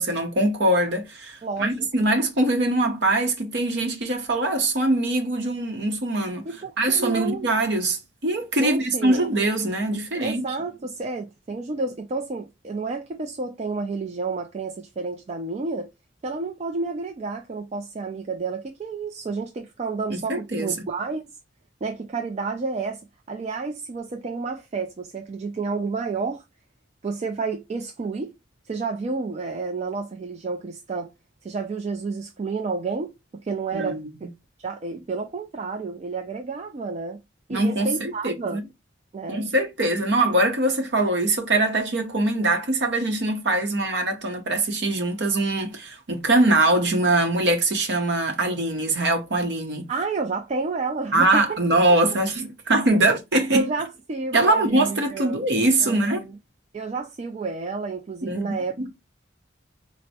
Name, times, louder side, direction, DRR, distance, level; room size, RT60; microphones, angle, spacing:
voice 1, 0.0-6.5 6.8-10.4 20.1-20.7 33.7-34.0 37.5-38.6 39.3-49.9 51.1-53.7 54.3-56.2 58.2-58.9, right 2 dB, 60° right, 0.7 m, -23 dB
voice 2, 1.4-1.9 6.5-7.5 8.6-9.2 10.1-15.9 16.2-21.2 21.8-23.0 23.3-26.4 27.0-28.3 28.7-31.1 31.4-33.1 33.4-34.3 34.6-37.2 37.5-38.6 39.1-39.4 49.9-51.4 51.7-51.8 53.5-55.4 55.8-56.3 56.7-58.9, right 4 dB, 35° right, 0.3 m, -30 dB
4.3 x 2.0 x 2.7 m
head